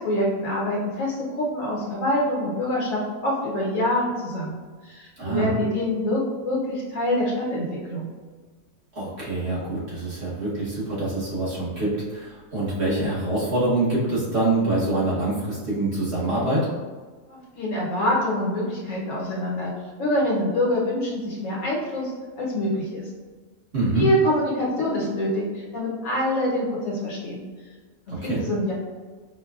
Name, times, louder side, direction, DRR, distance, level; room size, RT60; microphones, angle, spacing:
voice 1, 0.0-8.1 17.3-19.7 20.0-23.1 23.9-27.4 28.2-28.7, left 1 dB, 65° left, -5 dB, 1.2 m, -25 dB
voice 2, 5.2-5.5 8.9-16.7 23.7-24.0 28.1-28.4, right 2 dB, 50° right, -8 dB, 1.3 m, -25 dB
4.4 x 2.2 x 2.3 m, 1.4 s
omnidirectional pair, 1.5 m